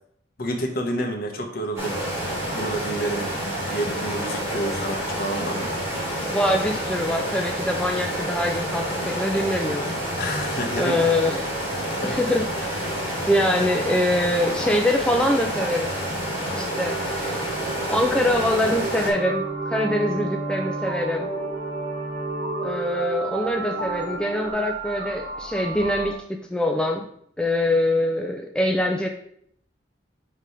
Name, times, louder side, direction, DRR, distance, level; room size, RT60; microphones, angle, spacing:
voice 1, 0.4-2.0 2.5-5.7 10.2-11.2 11.9-12.2, right 1 dB, 55° left, 3 dB, 1.1 m, -29 dB
sound 1, 1.8-19.1, equal, 15° right, 2.5 m, -28 dB
voice 2, 6.3-10.0 10.8-11.6 12.0-12.9 13.3-16.0 16.5-17.5 17.9-21.3 22.6-27.0 27.4-29.1, left 1 dB, 5° left, 2 dB, 0.4 m, -24 dB
sound 2, 16.7-24.5, right 5 dB, 60° right, 1.0 m, -34 dB
sound 3, 18.9-26.1, right 2 dB, 40° right, 1.2 m, -32 dB
4.8 x 3.8 x 5.6 m, 0.67 s
head